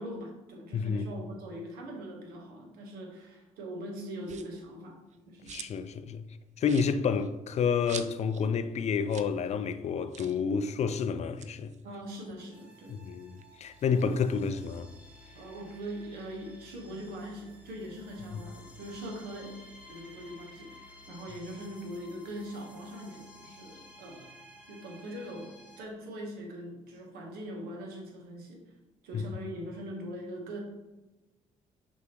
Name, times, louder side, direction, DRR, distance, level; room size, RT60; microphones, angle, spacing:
voice 1, 0.0-5.0 5.3-5.6 11.8-12.9 15.3-19.6 19.8-24.3 24.7-28.6 29.0-30.6, equal, 70° right, 1.1 m, -42 dB
voice 2, 0.7-1.1 5.5-6.2 6.6-11.7 12.9-14.9 29.1-29.2, left 6 dB, 45° left, 0.4 m, -29 dB
sound 1, 4.2-4.7 5.1-5.9 6.2-6.3 6.6-8.5 8.8-8.9 9.1-9.4 9.6-9.7 10.1-10.4 11.2-12.9 13.3-14.8, right 8 dB, 45° right, 0.4 m, -47 dB
sound 2, 12.5-25.8, left 1 dB, 10° right, 1.4 m, -53 dB
6.0 x 2.8 x 2.9 m
hypercardioid pair, 50°, 16 cm